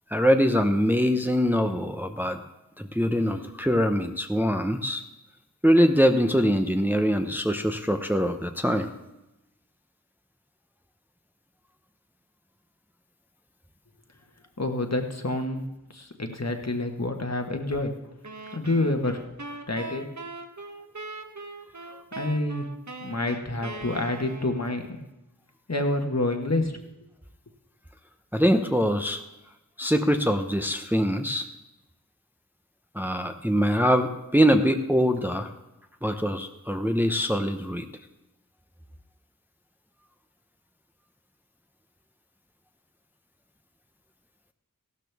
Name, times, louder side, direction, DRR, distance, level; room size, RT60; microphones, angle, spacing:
voice 1, 0.1-2.4 2.8-5.0 5.6-8.9 28.3-29.2 29.8-31.5 32.9-35.5 36.0-37.8, equal, 5° right, 6 dB, 0.8 m, -23 dB
voice 2, 14.6-15.6 15.9-17.9 18.5-19.2 19.7-20.0 22.1-22.7 23.0-24.8 25.7-26.8, left 2 dB, 50° left, 4 dB, 1.4 m, -27 dB
sound 1, 18.2-24.8, right 3 dB, 55° right, 1.1 m, -40 dB
15.5 x 12.5 x 3.5 m, 0.96 s
wide cardioid pair, 45°, 34 cm